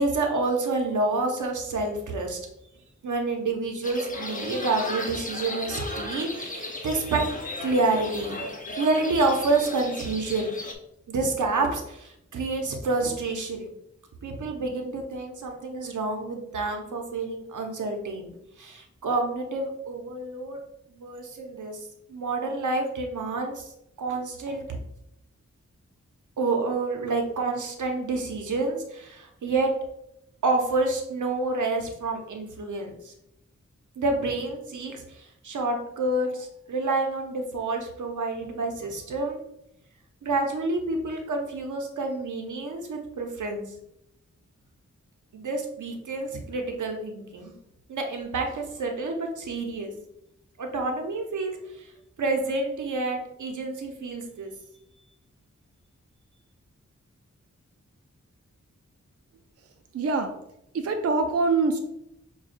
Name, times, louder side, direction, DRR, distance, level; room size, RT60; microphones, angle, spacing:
voice 1, 0.0-2.4 3.0-7.2 7.6-8.4 8.8-10.6 11.1-13.7 14.2-18.3 18.6-20.6 21.0-23.7 24.0-24.6 26.4-29.7 30.4-33.1 34.0-39.4 40.2-43.7 45.3-47.5 47.9-49.9 50.6-51.9 52.2-54.5, right 3 dB, 90° right, 3 dB, 0.7 m, -28 dB
sound 1, 3.8-10.7, left 1 dB, 30° left, 0.6 m, -35 dB
voice 2, 59.9-60.3 60.7-61.8, right 3 dB, 55° right, 5 dB, 0.4 m, -24 dB
6.2 x 2.3 x 2.5 m, 0.80 s
wide cardioid pair, 80°, 29 cm